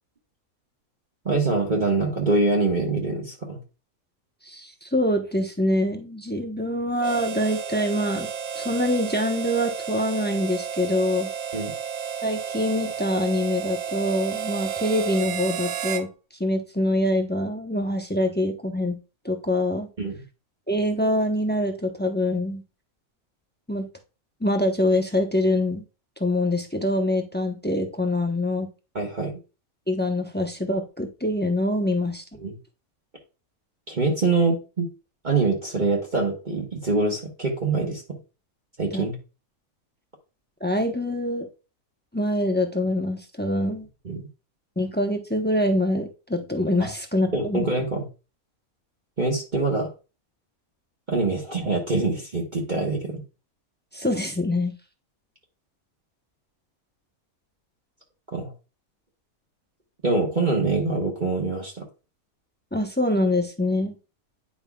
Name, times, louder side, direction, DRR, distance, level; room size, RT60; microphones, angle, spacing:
voice 1, 1.2-3.6 11.5-11.7 20.0-20.2 28.9-29.3 32.4-32.5 33.9-34.9 35.2-38.0 38.8-39.1 44.0-44.2 46.8-46.9 47.3-48.0 49.2-49.9 51.1-53.2 58.3-58.5 60.0-61.9, right 3 dB, 35° right, -1 dB, 1.3 m, -24 dB
voice 2, 4.4-8.3 8.5-11.3 12.2-16.1 16.4-19.0 19.2-19.9 20.7-22.6 23.7-23.9 24.4-25.8 26.2-28.7 29.9-32.2 38.9-39.1 40.6-41.5 42.1-43.9 44.8-47.7 53.9-54.7 62.7-64.0, left 1 dB, 10° left, 4 dB, 0.6 m, -25 dB
Harmonica, 7.0-16.1, right 8 dB, 80° right, 1.1 m, -32 dB
9.7 x 5.4 x 2.3 m, 0.31 s
omnidirectional pair, 1.5 m